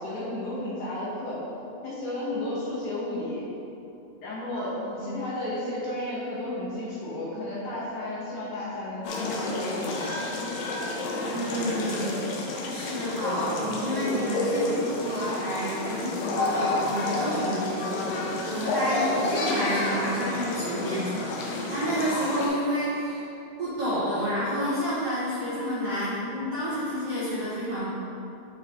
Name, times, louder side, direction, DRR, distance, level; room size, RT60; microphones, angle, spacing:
voice 1, 0.0-1.4 1.8-3.4 4.2-10.4, left 1 dB, 70° left, -7 dB, 1.9 m, -33 dB
voice 2, 4.5-5.1 11.3-23.2 23.6-27.9, equal, 60° right, -12 dB, 1.7 m, -30 dB
sound 1, 9.0-22.5, left 2 dB, 90° left, 1.9 m, -30 dB
8.0 x 4.6 x 3.5 m, 2.8 s
omnidirectional pair, 4.9 m